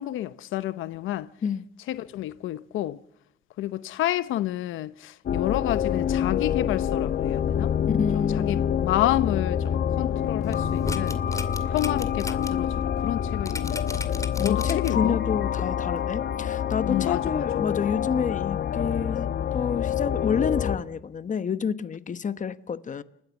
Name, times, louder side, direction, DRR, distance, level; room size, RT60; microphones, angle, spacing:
voice 1, 0.0-1.3 1.9-3.0 3.6-7.7 8.1-11.2 11.6-13.9 14.4-15.2 16.9-17.7, left 14 dB, 85° left, 0.8 m, -29 dB
sound 1, 5.3-20.8, left 9 dB, 60° left, 1.6 m, -27 dB
voice 2, 7.9-8.6 14.4-23.0, left 6 dB, 40° left, 1.1 m, -29 dB
sound 2, 10.4-12.5 12.9-13.0 13.5-15.1 15.6-15.7, left 2 dB, 15° left, 2.3 m, -35 dB
29.5 x 13.5 x 7.2 m
cardioid pair, 90°, 20 cm